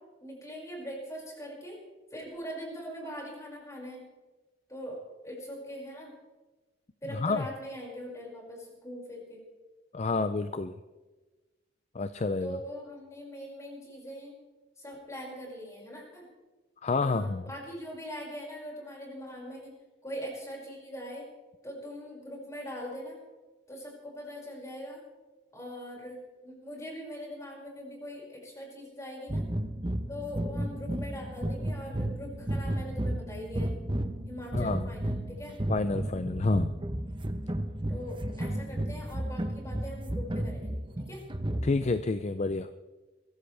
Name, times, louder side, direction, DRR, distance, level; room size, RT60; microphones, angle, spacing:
voice 1, 0.2-1.8 2.1-4.0 4.7-5.0 5.2-6.1 7.0-9.4 12.4-14.3 14.8-16.3 17.0-19.7 20.0-21.3 21.6-23.2 23.7-25.0 25.5-29.4 30.1-33.7 34.3-35.6 37.9-41.2, equal, 15° left, -3 dB, 5.9 m, -41 dB
voice 2, 7.1-7.4 9.9-10.8 11.9-12.6 16.8-17.4 34.5-34.9 35.7-36.7 41.6-42.7, left 3 dB, 40° left, 11 dB, 0.5 m, -29 dB
sound 1, 29.3-42.0, right 1 dB, 25° right, 1.0 m, -33 dB
22.5 x 15.5 x 3.4 m, 1.2 s
head